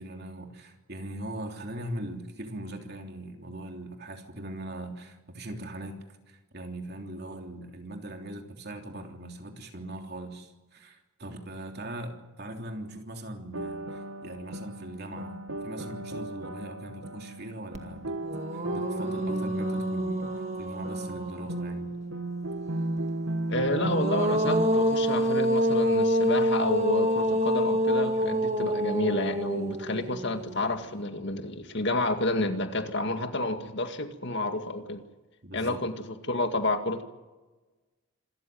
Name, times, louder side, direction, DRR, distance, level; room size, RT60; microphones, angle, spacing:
voice 1, 0.0-6.0 6.3-18.2 18.5-20.3 20.6-21.9 35.4-35.8, right 1 dB, 50° right, 3 dB, 3.3 m, -40 dB
sound 1, 13.5-24.7, right 2 dB, 75° right, 1.6 m, -35 dB
sound 2, 17.7-17.8 18.2-21.9 23.6-30.8, equal, 30° right, 2.1 m, -27 dB
voice 2, 23.5-35.0 35.5-35.9 36.2-37.0, left 2 dB, 55° left, 7 dB, 2.1 m, -30 dB
26.5 x 14.0 x 9.4 m, 1.2 s
head